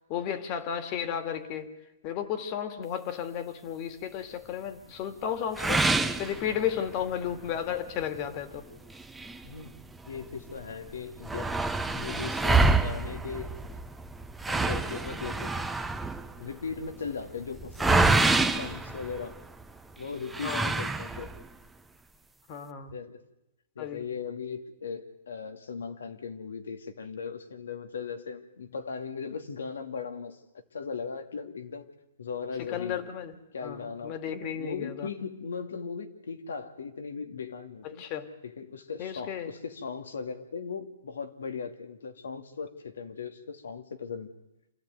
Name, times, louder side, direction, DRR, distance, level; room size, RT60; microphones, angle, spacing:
voice 1, 0.1-1.7 2.0-5.9 6.2-8.7 20.4-20.7 22.5-22.9 23.8-24.0 32.7-33.3 33.6-35.1 38.0-38.3 39.0-39.5, left 9 dB, 40° left, 8 dB, 2.5 m, -33 dB
sound 1, 5.6-7.0 7.5-7.6 8.0-8.1 8.9-10.2 10.6-10.7 10.9-19.6 20.3-21.5, right 3 dB, 5° right, 1.0 m, -27 dB
voice 2, 9.4-9.7 10.0-11.5 11.9-13.5 14.5-15.5 16.4-19.4 20.0-21.4 22.9-23.2 23.8-30.4 30.7-31.9 32.2-33.1 33.5-38.0 38.4-44.3, left 5 dB, 90° left, 7 dB, 2.4 m, -38 dB
27.0 x 14.5 x 9.4 m, 0.90 s
hypercardioid pair, 135°, 0 cm